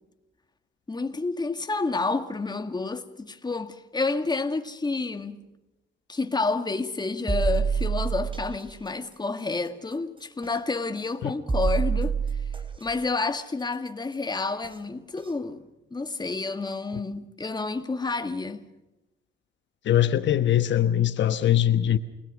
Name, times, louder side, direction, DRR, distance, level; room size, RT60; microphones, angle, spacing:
voice 1, 0.9-5.5 6.1-12.4 12.8-18.6, left 3 dB, 20° left, 2.0 m, -29 dB
sound 1, 7.3-8.6 10.4-10.5 11.5-12.8 14.6-14.7 15.2-15.3, right 6 dB, 25° right, 3.4 m, -26 dB
voice 2, 19.8-22.0, left 11 dB, 65° left, 1.2 m, -21 dB
29.0 x 19.5 x 6.3 m
cardioid pair, 90°, 20 cm